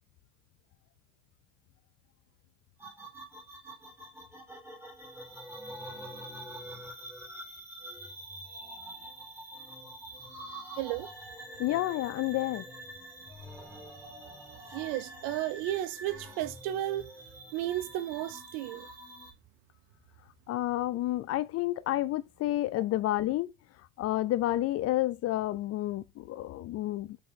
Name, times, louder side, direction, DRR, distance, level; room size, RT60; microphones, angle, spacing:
sound 1, 2.8-19.3, right 1 dB, 5° right, 2.9 m, -46 dB
voice 1, 10.8-11.1 14.7-17.0 17.5-18.9, right 14 dB, 55° right, 0.7 m, -33 dB
voice 2, 11.6-12.6 20.5-23.5 24.0-27.2, left 15 dB, 40° left, 0.5 m, -30 dB
6.2 x 3.7 x 5.1 m
supercardioid pair, 100°, 40 cm